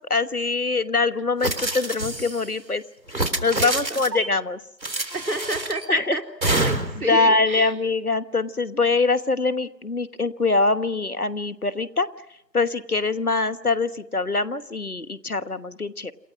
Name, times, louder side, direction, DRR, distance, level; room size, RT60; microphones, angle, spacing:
voice 1, 0.1-2.8 3.1-4.6 5.9-6.2 7.1-12.1 12.5-16.1, left 3 dB, 60° left, 14 dB, 1.3 m, -23 dB
sound 1, 1.4-2.5 3.1-4.3 4.8-5.9 6.4-7.1, right 2 dB, 85° right, 3.6 m, -27 dB
voice 2, 3.6-4.0 5.1-7.7, right 2 dB, 60° right, 4 dB, 3.9 m, -30 dB
27.5 x 26.5 x 6.1 m, 0.79 s
figure-of-eight pair, 180°, 50 cm